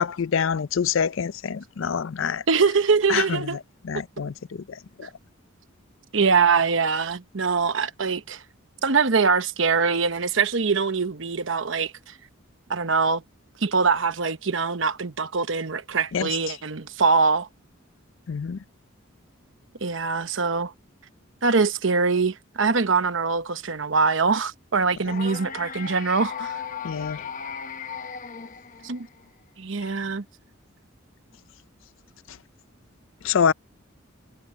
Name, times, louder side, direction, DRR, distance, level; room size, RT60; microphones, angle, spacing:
voice 1, 0.0-2.4 3.1-3.6 3.8-5.1 16.1-16.6 18.3-18.6 26.8-27.3 32.3-32.4 33.2-33.5, left 7 dB, 70° left, 0.4 m, -26 dB
voice 2, 2.5-3.6 5.0-5.1 6.1-8.4 8.8-11.9 12.7-13.2 13.6-17.5 19.8-20.7 21.4-26.6 28.8-29.1 29.6-30.2, right 4 dB, 65° right, 1.0 m, -23 dB
sound 1, 25.1-29.2, left 6 dB, 40° left, 0.9 m, -36 dB
head